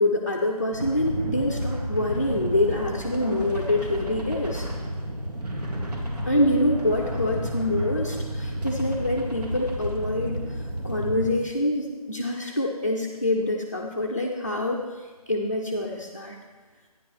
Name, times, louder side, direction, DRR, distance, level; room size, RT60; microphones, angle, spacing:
voice 1, 0.0-4.7 6.3-10.4 10.8-16.4, left 1 dB, 25° left, -2 dB, 0.4 m, -26 dB
sound 1, 0.7-11.3, right 1 dB, 80° right, 1.9 m, -31 dB
11.5 x 10.0 x 3.1 m, 1.3 s
hypercardioid pair, 180°, 20 cm